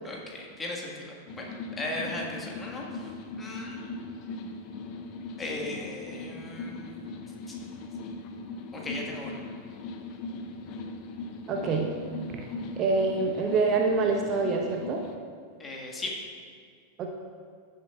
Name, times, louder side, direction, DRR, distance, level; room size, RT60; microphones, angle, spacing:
voice 1, 0.1-1.5 1.8-3.1 3.4-3.9 5.4-7.0 8.7-9.4 15.6-16.2, left 2 dB, 15° left, -1 dB, 1.6 m, -37 dB
sound 1, 1.3-15.2, left 3 dB, 40° left, 0.7 m, -39 dB
voice 2, 11.5-11.9 12.3-12.5 12.8-15.0 17.0-17.1, right 4 dB, 35° right, 2 dB, 0.8 m, -26 dB
15.0 x 7.3 x 2.4 m, 2.1 s
figure-of-eight pair, 90°, 0 cm